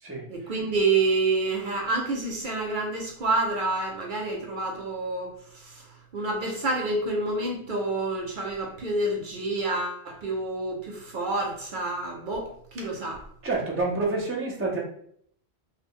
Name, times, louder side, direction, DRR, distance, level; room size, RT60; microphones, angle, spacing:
voice 1, 0.3-13.2, right 2 dB, 60° right, 0 dB, 0.6 m, -28 dB
voice 2, 13.4-14.8, right 3 dB, 20° right, -1 dB, 0.4 m, -28 dB
2.1 x 2.1 x 3.6 m, 0.65 s
omnidirectional pair, 1.1 m